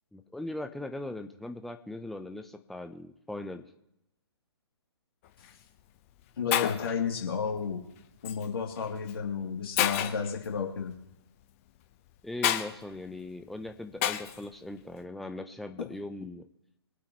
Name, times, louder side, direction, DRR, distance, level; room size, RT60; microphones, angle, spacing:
voice 1, 0.1-3.6 12.2-16.4, left 2 dB, ahead, 6 dB, 0.6 m, -39 dB
Shatter, 5.3-5.5 6.2-6.3 6.5-7.0 8.2-8.5 9.1-9.2 9.8-10.3 12.4-12.7 14.0-14.4, left 11 dB, 30° left, 0.9 m, -28 dB
voice 2, 6.4-7.8 8.2-10.9, left 6 dB, 55° left, 0 dB, 2.8 m, -32 dB
25.0 x 8.4 x 3.1 m, 0.85 s
figure-of-eight pair, 130°, 14 cm